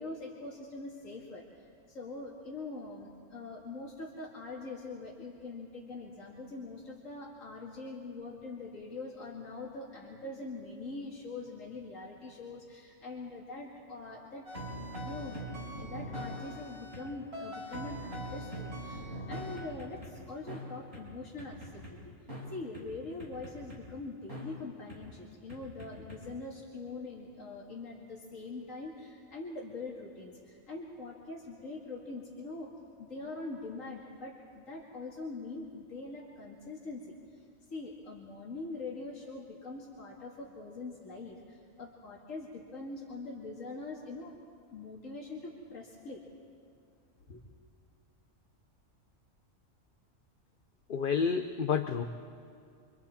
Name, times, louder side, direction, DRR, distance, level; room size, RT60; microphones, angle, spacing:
voice 1, 0.0-14.5 14.7-15.4 15.8-22.2 22.5-32.7 33.0-37.4 37.7-44.3 44.7-46.2 47.3-47.4, left 3 dB, 85° left, -3 dB, 2.5 m, -43 dB
sound 1, 14.4-17.0 17.3-20.1 20.5-20.6 20.9-21.0 21.4-21.9 22.3-22.4 22.7-22.8 23.2-23.8 24.3-24.4 24.9-25.0 25.5-26.2, equal, 55° right, 5.8 m, -41 dB
voice 2, 50.9-52.0, left 6 dB, 50° left, 7 dB, 0.9 m, -29 dB
28.0 x 25.5 x 4.4 m, 2.4 s
omnidirectional pair, 1.3 m